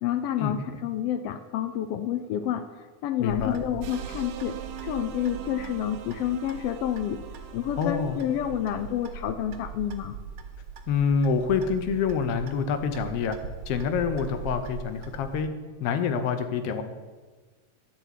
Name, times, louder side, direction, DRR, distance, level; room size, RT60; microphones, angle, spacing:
voice 1, 0.0-2.7 3.0-7.2 7.5-10.1, left 10 dB, 85° left, 9 dB, 1.3 m, -29 dB
voice 2, 3.2-3.6 7.8-8.2 10.9-13.4 13.7-15.5 15.8-16.8, left 6 dB, 70° left, 8 dB, 1.5 m, -26 dB
Clock, 3.3-15.4, right 5 dB, 60° right, 1.6 m, -41 dB
sound 1, 3.8-9.1, right 8 dB, 75° right, 1.9 m, -42 dB
12.5 x 4.5 x 8.2 m, 1.4 s
omnidirectional pair, 3.4 m